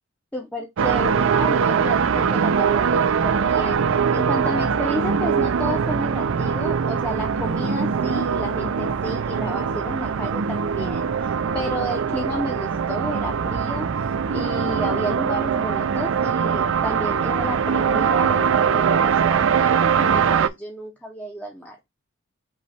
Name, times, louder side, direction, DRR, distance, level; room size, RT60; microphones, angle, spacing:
voice 1, 0.3-13.9 14.3-21.9, equal, 5° left, 0.6 m, -31 dB
sound 1, 0.8-20.5, right 6 dB, 60° right, 0.4 m, -22 dB
5.7 x 2.3 x 4.1 m
head